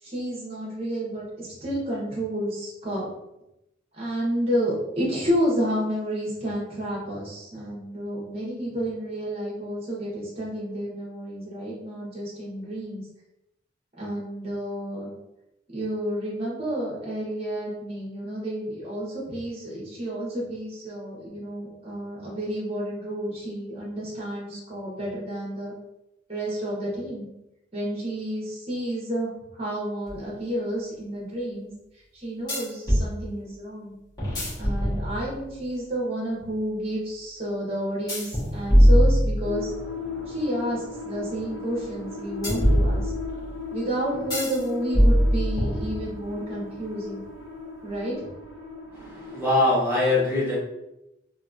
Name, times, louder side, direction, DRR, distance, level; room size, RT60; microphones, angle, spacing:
voice 1, 0.0-3.1 3.9-13.0 14.0-15.1 15.7-25.7 26.3-27.3 27.7-31.7 32.1-33.9 34.6-39.7 40.3-43.1 43.7-47.2 47.8-48.3, equal, 35° right, -5 dB, 1.1 m, -30 dB
sound 1, 30.1-30.2 32.5-33.1 34.2-35.5 38.1-39.8 42.4-43.4 44.3-44.6 44.9-46.3, equal, 20° left, 1.3 m, -21 dB
sound 2, 39.4-49.6, left 4 dB, 85° left, 0.6 m, -37 dB
voice 2, 48.9-50.6, left 2 dB, 10° right, -8 dB, 1.2 m, -23 dB
2.9 x 2.8 x 2.5 m, 0.89 s
head